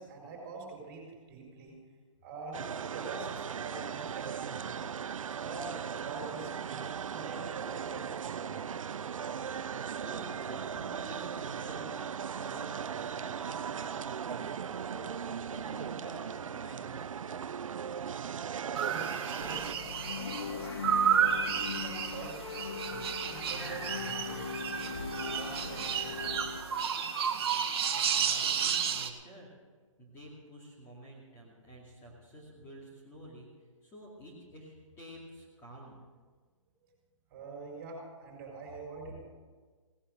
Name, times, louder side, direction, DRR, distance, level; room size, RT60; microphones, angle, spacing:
voice 1, 0.0-1.8 2.2-4.9 5.3-8.7 18.5-20.7 21.2-22.4 22.9-24.6 25.1-26.6 37.3-39.3, right 3 dB, 30° right, 0 dB, 4.5 m, -46 dB
sound 1, 2.5-19.7, right 7 dB, 80° right, 0.6 m, -38 dB
voice 2, 9.7-17.3 27.9-29.5 30.0-33.5 33.8-35.9, right 1 dB, 15° left, -5 dB, 2.4 m, -50 dB
sound 2, 18.8-29.1, right 7 dB, 50° right, 1.4 m, -32 dB
sound 3, 19.4-26.6, left 5 dB, 55° left, 1.7 m, -40 dB
17.5 x 10.0 x 6.4 m, 1.4 s
hypercardioid pair, 160°, 17 cm